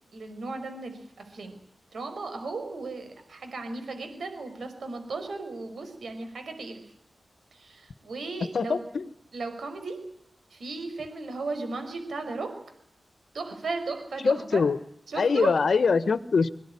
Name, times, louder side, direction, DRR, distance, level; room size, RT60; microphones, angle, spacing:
voice 1, 0.1-1.6 1.9-6.8 7.5-8.8 9.3-10.0 10.5-12.5 13.3-14.6 15.1-15.7, right 3 dB, 80° right, 7 dB, 5.4 m, -35 dB
voice 2, 8.5-9.0 14.2-14.8 15.1-16.5, left 5 dB, 70° left, 13 dB, 1.3 m, -23 dB
23.5 x 17.5 x 10.0 m, 0.70 s
wide cardioid pair, 95°, 0 cm